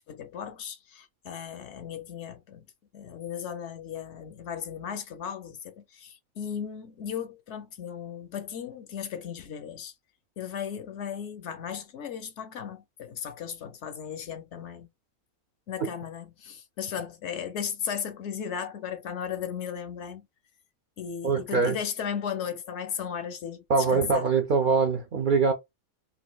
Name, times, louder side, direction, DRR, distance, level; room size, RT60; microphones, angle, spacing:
voice 1, 0.1-2.7 2.9-9.9 10.4-14.9 15.7-20.3 21.0-23.6 23.9-24.2, left 8 dB, 65° left, 0.8 m, -36 dB
voice 2, 21.2-21.8 23.7-25.5, right 4 dB, 65° right, 0.5 m, -23 dB
3.9 x 2.4 x 2.2 m
omnidirectional pair, 1.4 m